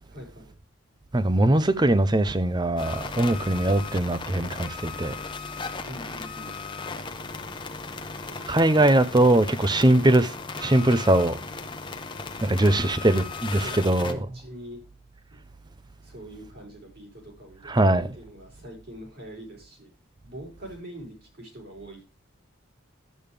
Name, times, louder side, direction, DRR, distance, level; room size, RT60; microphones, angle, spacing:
voice 1, 0.0-0.5 5.9-6.5 8.1-8.5 12.4-13.0 13.6-14.8 16.0-19.9 20.2-22.0, equal, 50° right, 5.2 m, -44 dB
voice 2, 1.1-5.2 8.5-10.3 10.6-11.4 12.4-14.2 17.7-18.1, right 1 dB, 20° right, 0.6 m, -21 dB
sound 1, 2.8-14.1, left 4 dB, 25° left, 0.8 m, -36 dB
11.0 x 8.5 x 3.4 m
head